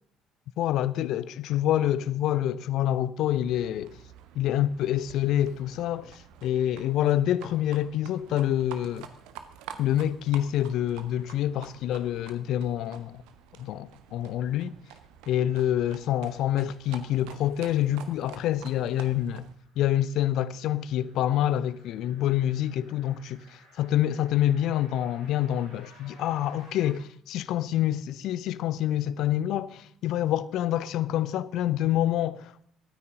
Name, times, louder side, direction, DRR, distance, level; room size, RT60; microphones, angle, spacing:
voice 1, 0.6-4.0 4.4-9.1 9.8-13.2 13.6-14.7 15.3-19.5 19.8-32.7, left 12 dB, 55° left, 0.5 m, -27 dB
Livestock farm animals working animals, 3.4-19.5, right 9 dB, 60° right, 1.1 m, -48 dB
sound 1, 18.6-26.9, equal, 80° left, 6.4 m, -56 dB
24.0 x 9.5 x 3.8 m
figure-of-eight pair, 50°, 0 cm